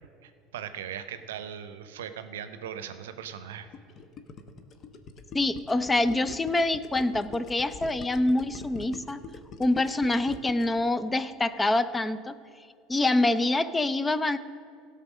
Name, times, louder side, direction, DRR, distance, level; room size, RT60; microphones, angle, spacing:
voice 1, 0.0-3.7, right 9 dB, 75° right, 11 dB, 0.6 m, -39 dB
Gurgling, 3.7-10.8, left 4 dB, 45° left, 0.9 m, -43 dB
voice 2, 5.3-9.2 9.6-12.3 12.9-14.4, left 2 dB, 15° left, 14 dB, 0.5 m, -25 dB
16.5 x 5.5 x 6.3 m, 2.3 s
hypercardioid pair, 75°, 0 cm